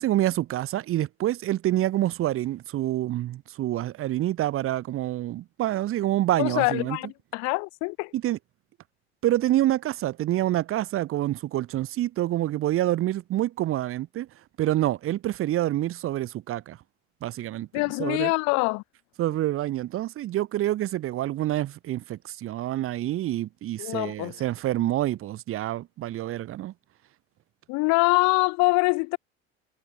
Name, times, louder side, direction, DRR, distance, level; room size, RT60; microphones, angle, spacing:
voice 1, 0.0-7.0 8.1-8.4 9.2-14.3 14.6-16.8 17.2-17.7 18.0-18.3 19.2-26.7, right 14 dB, 40° right, 1.1 m, -27 dB
voice 2, 6.4-8.1 17.7-18.8 23.8-24.4 27.7-29.2, left 29 dB, 55° left, 0.7 m, -24 dB
hypercardioid pair, 70°, 32 cm